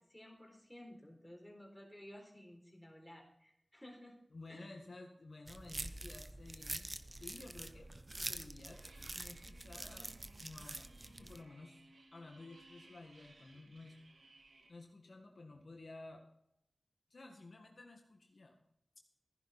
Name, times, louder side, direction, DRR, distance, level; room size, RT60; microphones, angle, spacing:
voice 1, 0.0-4.2 4.5-4.8, left 1 dB, 5° left, 1 dB, 4.0 m, -55 dB
voice 2, 4.3-8.8 9.1-10.1 10.4-11.8 12.1-14.0 14.7-16.2 17.1-18.6, left 2 dB, 60° left, 2 dB, 1.8 m, -53 dB
sound 1, 5.5-11.4, right 2 dB, 30° right, 0.9 m, -46 dB
sound 2, 8.7-14.7, right 2 dB, 85° right, 2.5 m, -62 dB
15.0 x 10.5 x 4.2 m, 0.78 s
wide cardioid pair, 65°, 0 cm